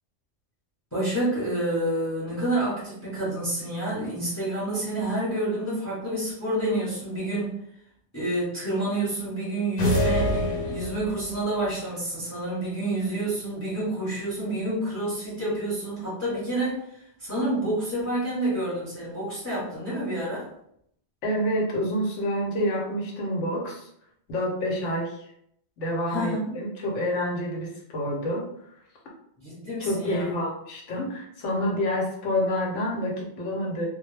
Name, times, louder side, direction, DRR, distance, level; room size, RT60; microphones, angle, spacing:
voice 1, 0.9-7.5 8.1-20.5 26.1-26.5 29.4-30.3, right 1 dB, 15° left, -8 dB, 0.8 m, -28 dB
sound 1, 9.8-11.3, left 1 dB, 55° left, 0.8 m, -25 dB
voice 2, 21.2-23.9 24.3-25.3 25.8-28.4 29.8-33.9, equal, 90° left, -1 dB, 1.0 m, -28 dB
2.2 x 2.1 x 3.1 m, 0.72 s
omnidirectional pair, 1.2 m